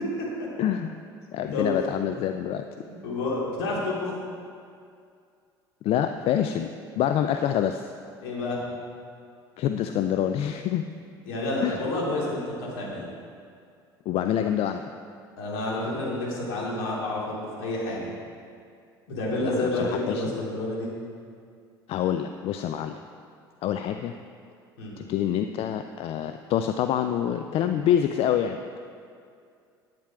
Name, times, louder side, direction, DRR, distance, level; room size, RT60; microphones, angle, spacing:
voice 1, 0.6-1.0 1.3-2.7 5.8-6.7 7.0-7.9 9.6-10.9 11.6-11.9 14.1-14.8 19.4-20.3 21.9-23.0 23.6-24.2 25.0-28.8, left 10 dB, 45° left, 8 dB, 0.4 m, -26 dB
voice 2, 2.8-4.1 8.2-8.6 11.2-13.1 15.4-18.1 19.1-20.9 24.8-25.0, left 2 dB, 65° left, -4 dB, 2.9 m, -29 dB
10.0 x 9.1 x 4.7 m, 2.3 s
figure-of-eight pair, 65°, 13 cm